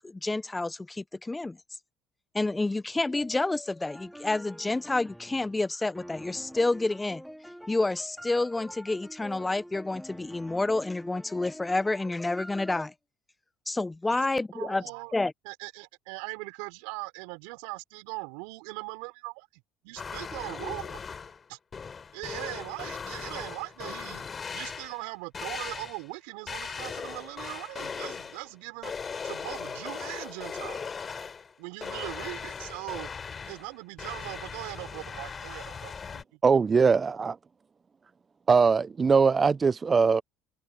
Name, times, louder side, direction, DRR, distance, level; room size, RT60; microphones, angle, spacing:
voice 1, 0.0-1.6 2.3-7.2 7.7-12.9 13.7-14.8 15.1-15.3, left 2 dB, 15° left, 0.7 m, -29 dB
sound 1, 3.8-12.8, equal, ahead, 4.1 m, -46 dB
voice 2, 14.5-15.2 15.4-21.0 21.5-21.6 22.1-24.2 24.5-28.9 29.2-30.9 31.6-33.1 33.5-36.4, right 31 dB, 75° right, 3.5 m, -40 dB
sound 2, 20.0-21.4 21.7-25.1 25.3-26.1 26.5-28.5 28.8-31.5 31.8-36.2, left 5 dB, 35° left, 3.8 m, -38 dB
voice 3, 36.4-37.4 38.5-40.2, right 5 dB, 30° right, 0.4 m, -21 dB
hypercardioid pair, 65°, 0 cm